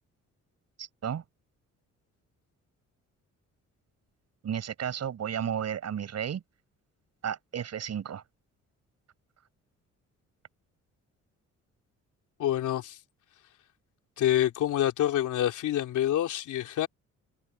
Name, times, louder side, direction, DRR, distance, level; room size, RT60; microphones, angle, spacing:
voice 1, 0.8-1.2 4.4-6.4 7.2-8.2, right 8 dB, 60° right, 7.1 m, -33 dB
voice 2, 12.4-13.0 14.2-16.9, left 12 dB, 80° left, 3.4 m, -27 dB
cardioid pair, 90°, 30 cm